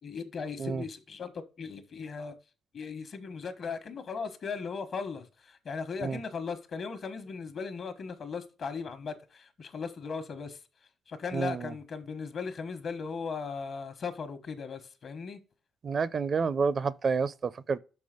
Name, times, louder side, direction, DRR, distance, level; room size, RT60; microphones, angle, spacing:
voice 1, 0.0-2.3 2.7-10.6 11.1-15.4, left 5 dB, 55° left, 1.2 m, -38 dB
voice 2, 11.3-11.7 15.8-17.8, right 5 dB, 45° right, 0.5 m, -29 dB
5.9 x 5.4 x 5.1 m
cardioid pair, 90°, 0 cm